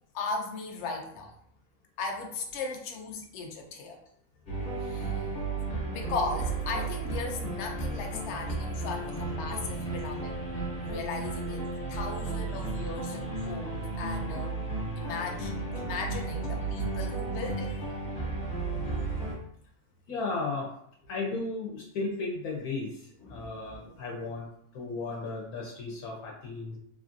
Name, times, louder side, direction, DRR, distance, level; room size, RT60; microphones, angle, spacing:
voice 1, 0.1-1.3 2.0-4.0 4.8-5.3 5.9-10.4 10.8-14.6 15.0-18.3 23.2-23.5 23.9-24.0, left 4 dB, 65° left, 2 dB, 0.7 m, -37 dB
sound 1, 4.5-19.3, right 3 dB, 35° left, 0.9 m, -33 dB
voice 2, 20.1-20.7 21.1-22.9 23.3-24.5 24.7-26.8, left 3 dB, 80° left, -2 dB, 1.2 m, -34 dB
3.1 x 2.5 x 2.5 m, 0.68 s
omnidirectional pair, 1.6 m